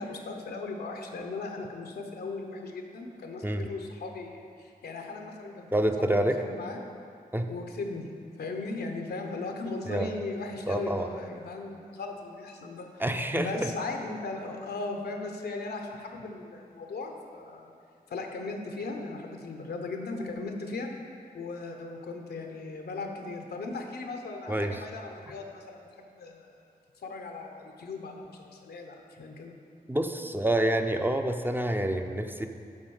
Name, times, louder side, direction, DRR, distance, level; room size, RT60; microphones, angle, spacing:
voice 1, 0.0-6.8 7.5-8.1 8.4-13.0 13.4-17.7 18.1-20.9 21.3-26.5 27.0-29.5, left 3 dB, 90° left, 3 dB, 0.8 m, -37 dB
voice 2, 5.7-6.4 7.3-7.5 9.9-10.1 10.7-11.1 13.0-13.7 24.5-24.8 29.9-32.5, right 1 dB, 10° right, 5 dB, 0.5 m, -27 dB
7.2 x 4.5 x 6.3 m, 2.5 s
cardioid pair, 50°, 16 cm